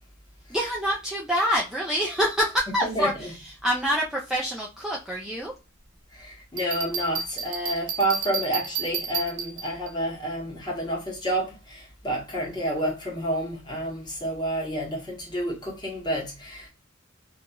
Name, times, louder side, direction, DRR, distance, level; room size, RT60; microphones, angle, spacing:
voice 1, 0.5-3.3 3.6-5.5, equal, ahead, 0.4 m, -26 dB
voice 2, 2.8-3.3 6.1-16.7, right 1 dB, 20° left, 1.1 m, -29 dB
Bell, 6.6-9.9, right 7 dB, 85° right, 0.6 m, -32 dB
2.9 x 2.3 x 2.3 m
head